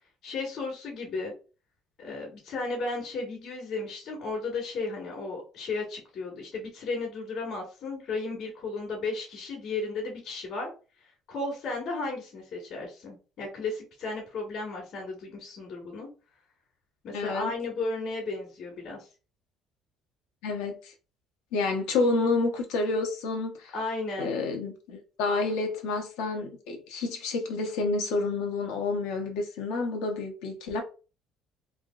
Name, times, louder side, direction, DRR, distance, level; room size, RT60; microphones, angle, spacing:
voice 1, 0.2-1.3 2.0-10.7 11.3-16.1 17.0-19.1 23.7-24.3, left 3 dB, 60° left, 1.6 m, -34 dB
voice 2, 17.1-17.5 20.4-20.9 21.5-23.7 24.2-30.8, left 3 dB, 90° left, 0.8 m, -29 dB
3.4 x 2.5 x 2.4 m
cardioid pair, 100°, 0 cm